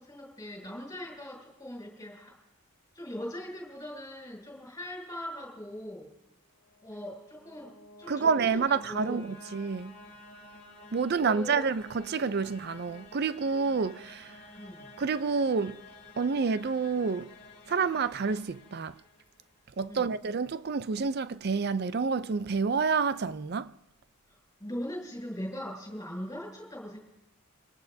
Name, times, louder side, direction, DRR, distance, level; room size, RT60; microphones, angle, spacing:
voice 1, 0.0-2.3 2.9-6.1 6.8-7.7 8.0-9.3 11.1-11.7 14.6-14.9 19.9-20.1 24.3-27.0, equal, 15° left, 6.8 m, -40 dB
sound 1, 6.6-19.6, left 2 dB, 50° left, 2.2 m, -52 dB
voice 2, 8.1-9.9 10.9-14.4 15.0-15.8 16.2-17.3 17.7-19.0 19.8-23.7, right 5 dB, 50° right, 0.4 m, -28 dB
26.0 x 18.0 x 2.7 m
head